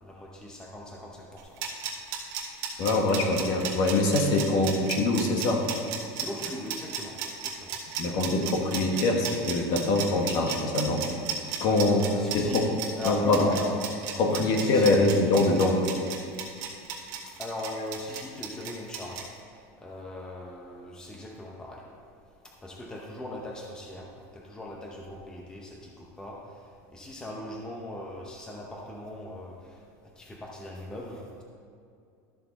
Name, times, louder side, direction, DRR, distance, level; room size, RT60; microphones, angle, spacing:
voice 1, 0.0-1.5 4.5-4.6 6.1-7.7 8.1-8.3 11.9-12.6 13.0-13.8 14.5-15.2 17.4-19.3 19.8-21.8 22.6-26.4 26.9-29.6 30.2-31.4, left 1 dB, 10° left, -1 dB, 0.7 m, -39 dB
sound 1, 1.4-19.2, right 8 dB, 50° right, 1.6 m, -34 dB
voice 2, 2.8-5.6 8.0-11.0 11.6-12.0 12.3-12.7 13.0-13.5 14.2-15.8, left 2 dB, 45° left, 2 dB, 1.4 m, -24 dB
13.0 x 6.5 x 4.1 m, 2.4 s
cardioid pair, 165°, 8 cm